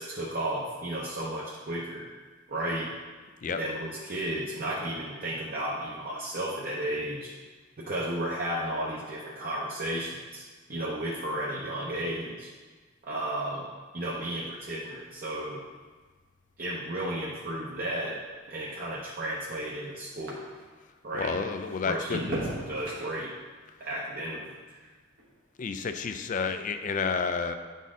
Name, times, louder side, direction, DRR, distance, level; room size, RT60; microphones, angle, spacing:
voice 1, 0.0-2.1 2.5-3.0 3.6-7.3 7.8-10.4 10.7-12.5 13.0-13.7 13.9-15.6 16.6-18.2 18.5-20.4 21.0-21.4 21.8-23.3 23.8-24.5, right 1 dB, 45° right, -4 dB, 0.8 m, -33 dB
sound 1, 14.2-20.9 21.3-25.8 26.1-26.6, right 1 dB, 75° right, 1.3 m, -43 dB
voice 2, 21.1-22.3 25.6-27.5, left 5 dB, 40° left, 8 dB, 0.4 m, -30 dB
9.2 x 4.2 x 3.7 m, 1.4 s
head